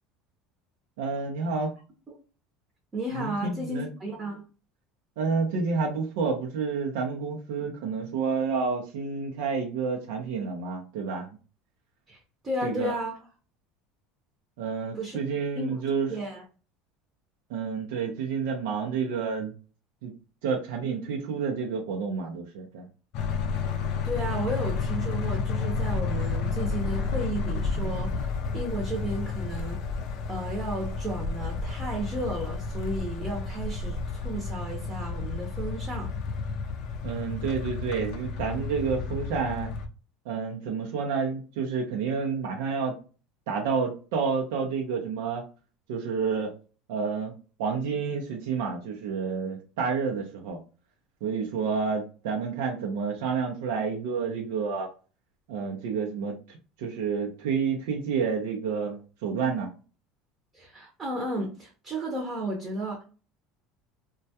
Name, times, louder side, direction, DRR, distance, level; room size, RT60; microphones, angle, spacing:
voice 1, 1.0-1.7 3.1-3.9 5.2-11.4 12.6-12.9 14.6-16.1 17.5-19.5 20.0-20.1 20.4-22.9 37.0-39.7 40.3-42.9 43.5-45.4 45.9-46.5 46.9-47.3 47.6-50.6 51.2-54.9 55.5-59.7, right 5 dB, 85° right, 0.5 m, -29 dB
voice 2, 2.9-4.4 12.1-12.2 12.4-13.2 14.9-15.2 15.6-15.8 16.1-16.4 24.0-28.3 28.5-29.8 30.3-36.1 60.5-63.0, right 1 dB, 25° right, 0.7 m, -33 dB
sound 1, 23.1-39.9, left 4 dB, 55° left, 0.4 m, -31 dB
2.2 x 2.1 x 2.7 m
supercardioid pair, 130°, 0 cm